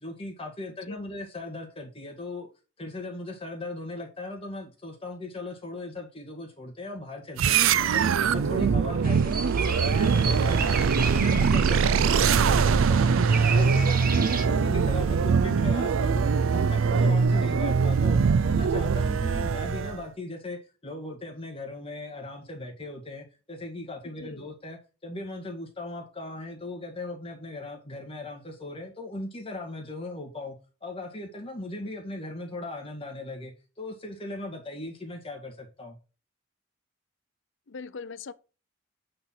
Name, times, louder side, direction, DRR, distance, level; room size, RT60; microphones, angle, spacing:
voice 1, 0.0-2.5 2.8-9.4 9.6-10.8 11.1-16.3 16.5-30.6 30.8-36.0, left 2 dB, 30° left, 2.0 m, -38 dB
sound 1, 7.4-20.0, right 5 dB, 80° right, 0.4 m, -22 dB
sound 2, 9.0-14.5, right 5 dB, 45° right, 1.3 m, -33 dB
voice 2, 37.7-38.3, left 5 dB, 65° left, 0.6 m, -40 dB
8.5 x 4.4 x 5.7 m
head